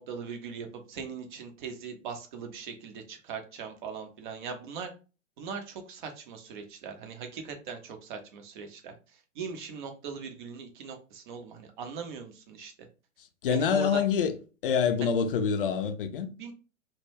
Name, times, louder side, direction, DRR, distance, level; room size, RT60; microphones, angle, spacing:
voice 1, 0.0-4.9 5.4-12.7 13.5-14.0 15.0-15.1 16.4-16.5, right 6 dB, 40° right, 0.6 m, -40 dB
voice 2, 13.4-14.3 14.6-16.3, left 7 dB, 45° left, 0.5 m, -26 dB
2.2 x 2.1 x 3.2 m
figure-of-eight pair, 110°, 39 cm